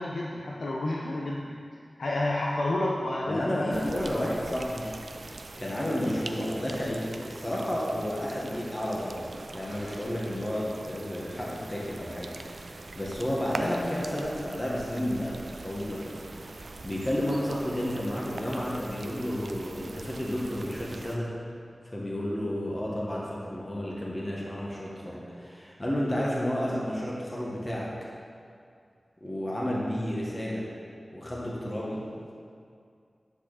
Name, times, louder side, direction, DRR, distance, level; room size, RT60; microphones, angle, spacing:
voice 1, 0.0-1.5 2.0-4.0 6.0-6.1 13.3-13.4, left 1 dB, 90° left, -3 dB, 0.7 m, -30 dB
voice 2, 3.3-4.9 5.6-9.3 9.5-21.3 21.9-27.9 29.2-30.7 31.1-32.0, equal, 30° left, -5 dB, 1.6 m, -31 dB
sound 1, 3.7-21.2, right 3 dB, 70° right, 0.5 m, -43 dB
10.0 x 6.3 x 4.2 m, 2.3 s
wide cardioid pair, 60°, 0 cm